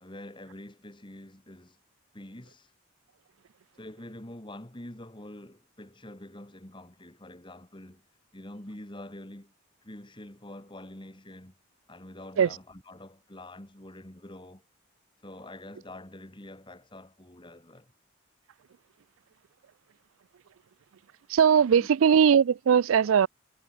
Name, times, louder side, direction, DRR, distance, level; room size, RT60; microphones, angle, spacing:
voice 1, 0.0-1.8 2.1-2.7 3.8-8.0 8.3-9.5 9.8-11.5 11.9-14.6 15.2-17.9 21.8-21.9 23.0-23.1, left 1 dB, 20° left, 2.0 m, -46 dB
voice 2, 21.3-23.3, right 7 dB, 70° right, 0.4 m, -20 dB
head